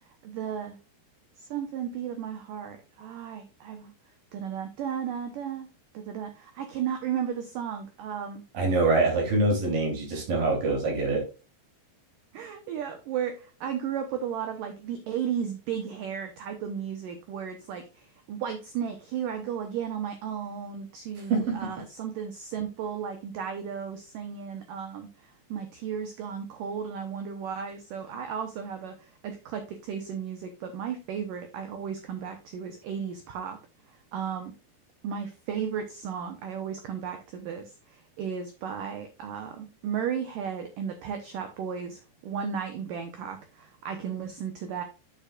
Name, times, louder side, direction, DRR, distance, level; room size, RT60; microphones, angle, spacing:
voice 1, 0.2-0.8 1.4-3.9 4.3-5.7 5.9-8.4 12.3-33.6 33.9-34.5 35.0-44.8, right 8 dB, 75° right, 6 dB, 2.0 m, -34 dB
voice 2, 8.5-11.2 21.3-21.7, right 3 dB, 50° right, 0 dB, 4.7 m, -25 dB
10.0 x 7.2 x 2.4 m, 0.31 s
omnidirectional pair, 5.3 m